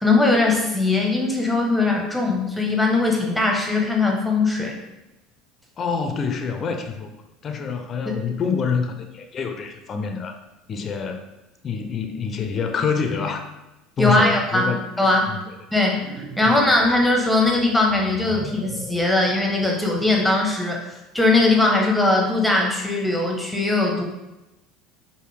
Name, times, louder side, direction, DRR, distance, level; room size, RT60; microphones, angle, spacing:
voice 1, 0.0-4.7 14.0-15.3 15.7-24.0, left 2 dB, ahead, 0 dB, 1.0 m, -20 dB
voice 2, 5.8-7.1 7.4-10.4 10.7-11.2 11.6-13.4 14.0-14.8 15.3-15.4 16.4-16.5, left 5 dB, 40° left, 6 dB, 0.5 m, -26 dB
sound 1, 15.9-20.5, right 3 dB, 50° right, 1.0 m, -40 dB
4.8 x 2.6 x 3.3 m, 0.98 s
supercardioid pair, 95°, 0 cm